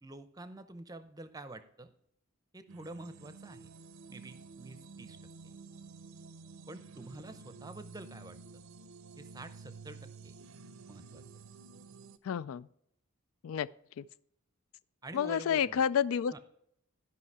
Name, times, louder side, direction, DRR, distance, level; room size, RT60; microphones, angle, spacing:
voice 1, 0.0-1.9 2.5-3.7 4.1-5.2 6.7-8.4 9.2-10.3 10.9-11.2 15.0-15.8 16.3-16.4, right 2 dB, 15° right, 0.6 m, -47 dB
sound 1, 2.7-12.2, right 4 dB, 70° right, 0.6 m, -51 dB
voice 2, 12.2-12.7 13.4-13.7 14.0-14.1 15.1-16.4, left 8 dB, 75° left, 0.3 m, -30 dB
12.5 x 5.7 x 4.7 m
head